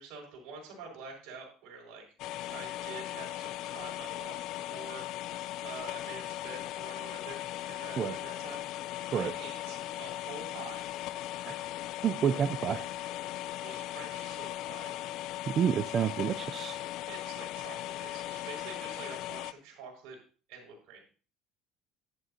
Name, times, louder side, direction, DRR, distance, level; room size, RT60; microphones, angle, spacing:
voice 1, 0.0-2.0 2.5-5.4 5.6-7.4 7.7-8.7 9.1-10.8 13.6-14.9 17.1-20.2 20.5-21.0, right 4 dB, 75° right, 0 dB, 5.9 m, -47 dB
sound 1, 2.2-19.5, left 14 dB, 65° left, 0.4 m, -38 dB
voice 2, 12.0-12.9 15.5-16.8, right 8 dB, 45° right, 9 dB, 0.6 m, -29 dB
11.5 x 11.0 x 2.9 m, 0.37 s
cardioid pair, 115°, 0 cm